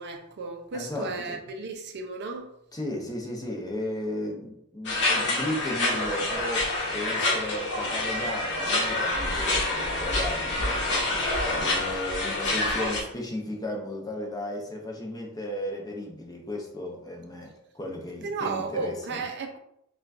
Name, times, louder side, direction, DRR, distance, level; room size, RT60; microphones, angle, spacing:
voice 1, 0.0-2.5 18.2-19.6, right 4 dB, 50° right, 0.5 m, -34 dB
voice 2, 0.7-1.4 2.7-19.2, left 1 dB, 20° left, 0.7 m, -35 dB
sound 1, 4.9-13.0, left 2 dB, 55° left, 1.0 m, -27 dB
5.7 x 2.3 x 2.5 m
head